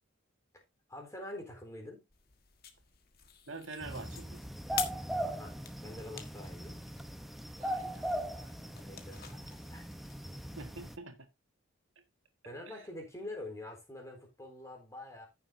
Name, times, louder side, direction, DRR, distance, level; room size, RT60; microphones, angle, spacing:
voice 1, 0.9-2.1 5.2-6.8 8.6-9.9 12.4-15.3, left 1 dB, 15° left, 4.1 m, -46 dB
sound 1, 2.1-10.9, left 9 dB, 50° left, 1.5 m, -47 dB
voice 2, 3.5-4.4 7.6-8.5 10.6-11.3, right 3 dB, 75° right, 1.9 m, -46 dB
sound 2, 3.8-11.0, right 1 dB, ahead, 0.9 m, -39 dB
15.0 x 7.0 x 2.7 m
head